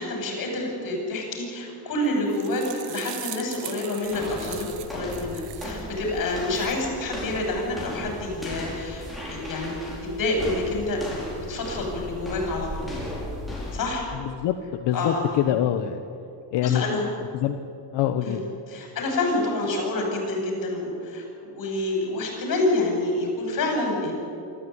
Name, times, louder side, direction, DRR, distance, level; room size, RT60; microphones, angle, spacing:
voice 1, 0.0-11.2 11.5-12.9 13.7-14.1 14.9-15.3 16.6-17.1 18.2-18.4 18.7-24.1, left 2 dB, 50° left, 1 dB, 7.6 m, -28 dB
sound 1, 2.0-5.8 6.3-6.8, right 13 dB, 90° right, 1.5 m, -40 dB
sound 2, 4.1-14.0, left 1 dB, ahead, 5.7 m, -36 dB
voice 2, 14.3-16.0 16.5-17.0 17.3-17.6 17.9-18.4, left 10 dB, 80° left, 7 dB, 1.2 m, -24 dB
25.0 x 14.0 x 9.7 m, 2.8 s
cardioid pair, 165°, 42 cm